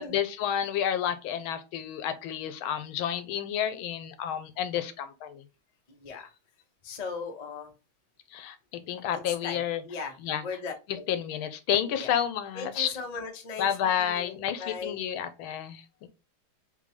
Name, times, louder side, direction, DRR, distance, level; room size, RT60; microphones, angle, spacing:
voice 1, 0.0-5.4 8.3-9.8 10.2-10.4 11.1-12.9 13.6-16.1, left 9 dB, 80° left, 1.5 m, -30 dB
voice 2, 5.9-6.3 6.8-7.7 9.3-10.2 10.4-11.0 11.9-12.1 12.5-15.0, left 5 dB, 40° left, 0.5 m, -38 dB
3.8 x 3.7 x 3.2 m
omnidirectional pair, 2.3 m